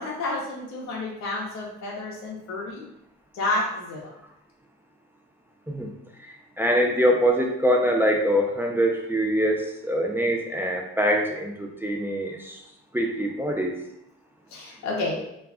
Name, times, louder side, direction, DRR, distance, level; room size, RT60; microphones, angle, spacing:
voice 1, 0.0-2.8 3.3-4.1 14.5-15.2, left 2 dB, 65° left, -3 dB, 0.7 m, -30 dB
voice 2, 6.2-12.6 12.9-13.7, equal, 10° right, 1 dB, 0.3 m, -24 dB
2.3 x 2.2 x 3.5 m, 0.81 s
cardioid pair, 90°, 30 cm